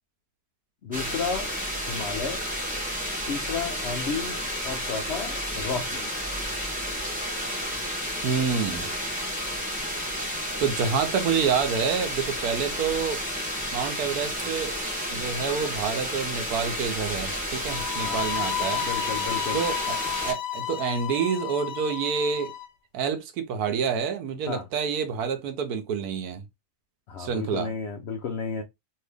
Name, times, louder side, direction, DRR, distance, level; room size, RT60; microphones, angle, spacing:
voice 1, 0.8-1.5 1.8-2.4 3.3-6.1 18.0-18.3 18.8-19.6 24.5-24.7 27.1-28.6, left 5 dB, 90° left, 0.5 m, -32 dB
sound 1, 0.9-20.3, equal, 10° right, 0.7 m, -31 dB
voice 2, 8.2-8.9 10.6-13.2 13.7-14.7 15.1-18.9 19.5-22.5 22.9-26.4 27.2-27.7, right 6 dB, 75° right, 1.1 m, -28 dB
sound 2, 17.7-22.7, left 10 dB, 55° left, 0.8 m, -32 dB
2.7 x 2.7 x 3.3 m
omnidirectional pair, 1.7 m